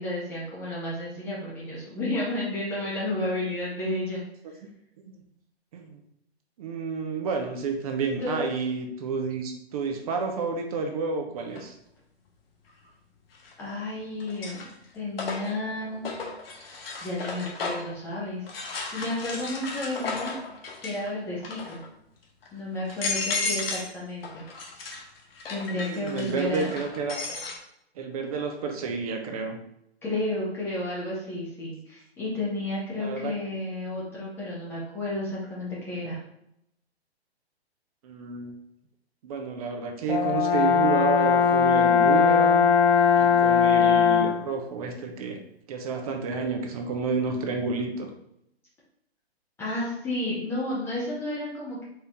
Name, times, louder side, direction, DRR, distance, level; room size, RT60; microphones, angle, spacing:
voice 1, 0.0-4.2 8.2-8.5 13.6-14.6 14.9-16.1 17.0-18.4 18.9-20.3 20.8-21.8 22.5-24.4 25.5-26.8 30.0-36.2 49.6-51.8, left 1 dB, 5° left, -7 dB, 0.4 m, -32 dB
voice 2, 6.6-11.7 25.7-27.2 28.0-29.6 33.0-33.3 38.0-38.5 39.2-42.7 43.2-45.4 45.7-48.1, right 4 dB, 35° right, 4 dB, 0.6 m, -30 dB
sound 1, 11.5-11.6 13.3-13.8 14.2-18.0 18.5-21.1 21.4-21.9 22.4-22.5 22.9-23.9 24.2-27.6, left 3 dB, 65° left, 1.1 m, -34 dB
Brass instrument, 40.1-44.5, left 6 dB, 80° left, 0.8 m, -20 dB
4.3 x 2.6 x 3.5 m, 0.78 s
hypercardioid pair, 135°, 32 cm